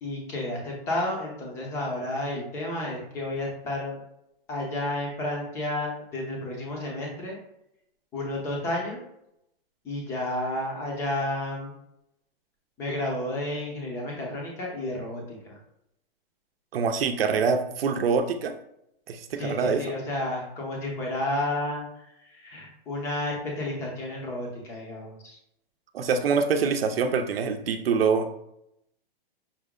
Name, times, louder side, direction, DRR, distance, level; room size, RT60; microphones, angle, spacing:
voice 1, 0.0-4.0 4.5-7.4 8.1-9.0 9.8-11.7 12.8-15.6 19.3-25.4, left 1 dB, 10° left, -1 dB, 0.5 m, -31 dB
voice 2, 16.7-18.6 19.1-19.9 25.9-28.3, right 5 dB, 80° right, 7 dB, 0.7 m, -25 dB
5.9 x 2.1 x 3.6 m, 0.79 s
hypercardioid pair, 165°, 29 cm